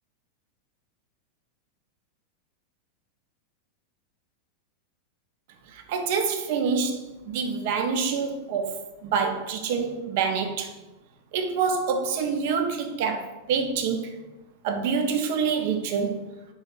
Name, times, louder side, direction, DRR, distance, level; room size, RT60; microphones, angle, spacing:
voice 1, 5.7-10.7 11.3-14.2 14.6-16.3, right 5 dB, 50° right, 5 dB, 0.4 m, -27 dB
3.0 x 2.7 x 3.7 m, 1.0 s
figure-of-eight pair, 90°, 0 cm